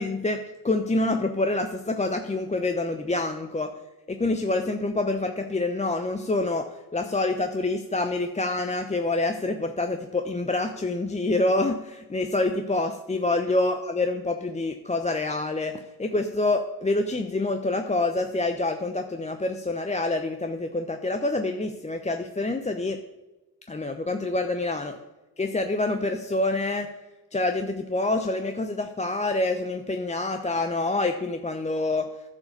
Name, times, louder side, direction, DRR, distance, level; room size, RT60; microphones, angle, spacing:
voice 1, 0.0-3.7 4.1-23.0 23.7-24.9 25.4-26.9 27.3-32.1, left 2 dB, 15° left, 6 dB, 0.7 m, -27 dB
10.5 x 4.8 x 6.6 m, 1.1 s
hypercardioid pair, 45°, 45 cm